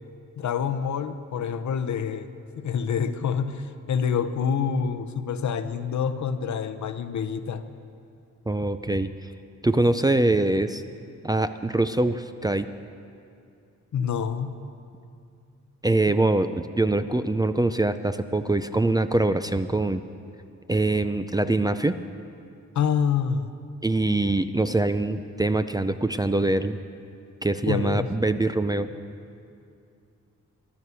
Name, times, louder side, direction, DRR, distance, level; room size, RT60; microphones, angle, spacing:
voice 1, 0.4-2.3 2.6-7.6 13.9-14.6 22.7-23.5 27.7-28.2, left 7 dB, 70° left, 10 dB, 0.8 m, -27 dB
voice 2, 8.5-9.1 9.6-10.8 11.2-12.7 15.8-20.0 20.7-22.0 23.8-26.8 27.4-28.9, right 2 dB, 15° right, 10 dB, 0.4 m, -23 dB
14.0 x 11.5 x 6.9 m, 2.5 s
wide cardioid pair, 100°, 30 cm